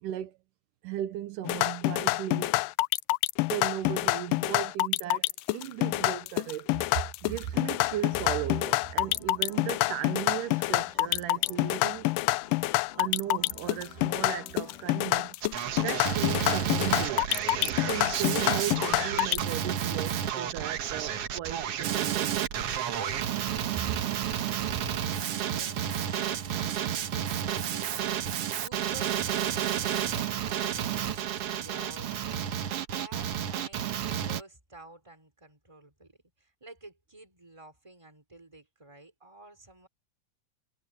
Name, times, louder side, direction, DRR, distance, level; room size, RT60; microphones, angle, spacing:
voice 1, 0.0-0.4 0.8-2.7 3.5-12.1 13.0-15.4 15.8-17.3 17.7-22.4 26.5-26.7, right 12 dB, 80° right, 2.4 m, -36 dB
sound 1, 1.4-19.4, left 20 dB, 85° left, 2.2 m, -27 dB
sound 2, 7.5-15.4, left 10 dB, 70° left, 3.4 m, -51 dB
Male speech man speaking, 15.4-34.4, right 9 dB, 60° right, 1.8 m, -31 dB
voice 2, 24.6-39.9, right 1 dB, 10° right, 4.3 m, -51 dB
omnidirectional pair, 3.8 m